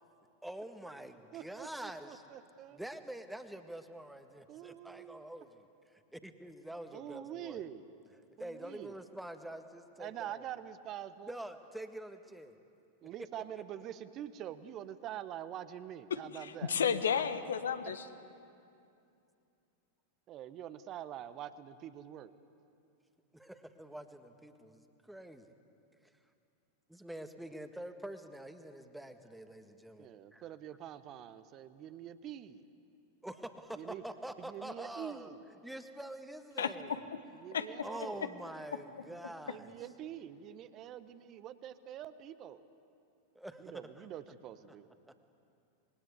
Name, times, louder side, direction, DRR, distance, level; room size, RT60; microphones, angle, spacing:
voice 1, 0.4-2.2 2.7-5.6 6.1-7.6 8.4-10.5 11.3-12.6 17.2-17.3 23.3-25.5 26.9-30.5 33.2-35.3 35.6-37.0 37.8-39.7 43.4-44.1 44.7-44.8, right 1 dB, 5° right, 8 dB, 1.7 m, -46 dB
voice 2, 1.3-2.8 4.5-5.2 6.9-7.8 8.4-8.9 10.0-11.4 13.0-16.8 20.3-22.3 30.0-32.7 33.8-34.0 34.4-35.5 37.4-38.4 39.5-42.6 43.6-44.9, right 11 dB, 35° right, 13 dB, 1.1 m, -45 dB
voice 3, 16.1-18.0 36.6-36.7 37.5-37.7, left 7 dB, 65° left, 10 dB, 1.5 m, -32 dB
27.0 x 22.0 x 8.3 m, 2.6 s
figure-of-eight pair, 90°, 0 cm